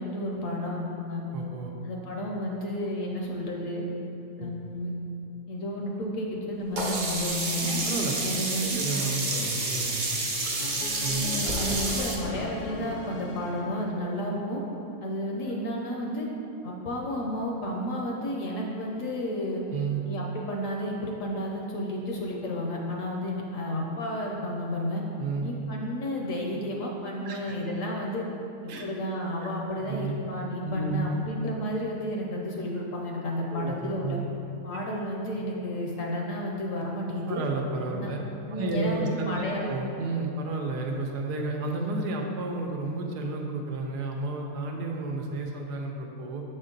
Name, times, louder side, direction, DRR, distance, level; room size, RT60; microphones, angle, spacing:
voice 1, 0.0-1.2 1.8-3.8 4.4-4.9 5.5-7.8 8.2-8.8 11.1-14.6 15.0-16.3 16.6-19.6 20.1-25.0 25.4-28.3 28.6-34.2 34.6-37.4 37.9-38.1 38.5-39.7, equal, 60° left, -1 dB, 0.9 m, -32 dB
voice 2, 1.3-1.7 4.4-4.5 7.4-7.5 7.9-10.3 11.0-11.2 14.0-14.1 15.5-15.6 19.7-20.0 25.2-25.5 27.2-27.7 28.7-28.9 29.9-30.2 30.6-31.3 33.5-34.3 37.3-38.2 38.5-46.4, right 3 dB, 80° right, 1 dB, 1.2 m, -32 dB
Sink (filling or washing), 6.8-12.2, right 2 dB, 50° right, 0.6 m, -29 dB
sound 1, 10.6-14.7, left 4 dB, 85° left, 1.2 m, -40 dB
6.5 x 4.4 x 3.8 m, 2.9 s
omnidirectional pair, 1.7 m